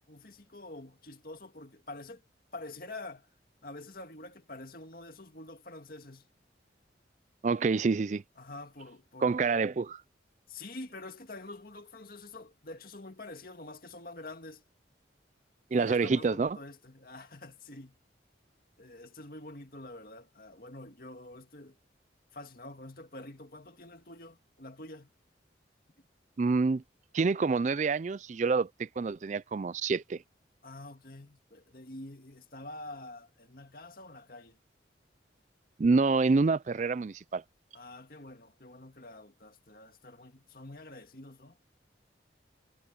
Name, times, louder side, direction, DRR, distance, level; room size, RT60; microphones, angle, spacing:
voice 1, 0.1-2.2 2.5-3.3 3.6-6.3 8.4-9.4 10.5-14.6 15.7-18.0 18.8-21.8 22.3-25.1 30.6-34.6 37.7-41.6, left 2 dB, 50° left, 2.2 m, -47 dB
voice 2, 7.4-8.2 9.2-10.0 15.7-16.6 26.4-26.8 27.1-30.2 35.8-37.4, right 4 dB, 40° right, 0.4 m, -27 dB
head